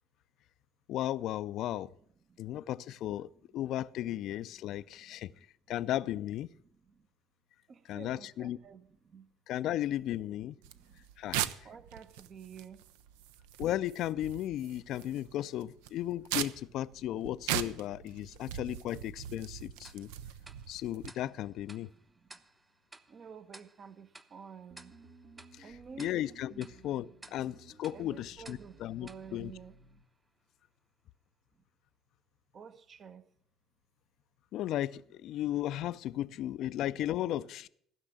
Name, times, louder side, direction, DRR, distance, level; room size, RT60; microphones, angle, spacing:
voice 1, 0.9-1.9 2.4-5.3 5.7-6.5 7.9-8.6 9.5-10.6 11.2-11.4 13.6-20.1 20.7-21.9 25.6-25.7 26.0-29.5 34.5-37.7, left 13 dB, 65° left, 0.4 m, -35 dB
voice 2, 4.5-5.5 6.7-7.1 7.7-9.3 10.6-11.0 11.6-12.8 15.2-15.3 15.9-16.0 17.3-17.4 18.2-18.6 18.9-19.3 19.8-20.6 21.8-22.4 23.1-24.9 25.6-26.1 26.5-26.7 27.9-30.0 32.5-33.3, right 6 dB, 45° right, 0.9 m, -52 dB
sound 1, 10.6-21.1, right 11 dB, 80° right, 0.5 m, -40 dB
Tick-tock, 19.8-30.3, right 2 dB, 20° right, 0.9 m, -58 dB
sound 2, 24.7-30.0, right 3 dB, 65° right, 1.6 m, -57 dB
15.0 x 6.0 x 7.4 m
hypercardioid pair, 60°, 0 cm